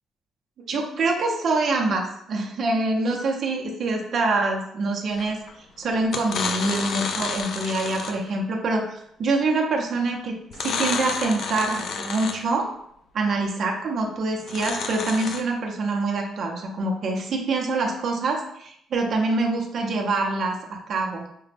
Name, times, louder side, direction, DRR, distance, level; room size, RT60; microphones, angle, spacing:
voice 1, 0.7-5.4 5.8-12.7 13.1-21.2, right 3 dB, 45° right, 1 dB, 0.6 m, -25 dB
sound 1, 5.2-5.5 6.0-8.3 10.5-12.6 14.4-15.4, left 5 dB, 55° left, 0.4 m, -30 dB
4.9 x 2.2 x 3.3 m, 0.72 s
cardioid pair, 145°, 0 cm